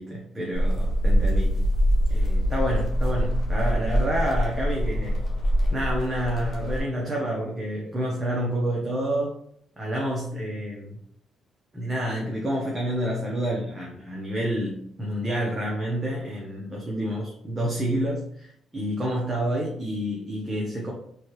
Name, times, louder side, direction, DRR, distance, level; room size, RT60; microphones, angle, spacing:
voice 1, 0.0-1.6 2.1-5.3 5.7-9.3 9.8-11.0 11.7-20.9, equal, 20° right, -3 dB, 1.0 m, -29 dB
sound 1, 0.5-6.8, equal, 50° left, 1.5 m, -24 dB
3.8 x 3.2 x 3.1 m, 0.67 s
cardioid pair, 90°, 0 cm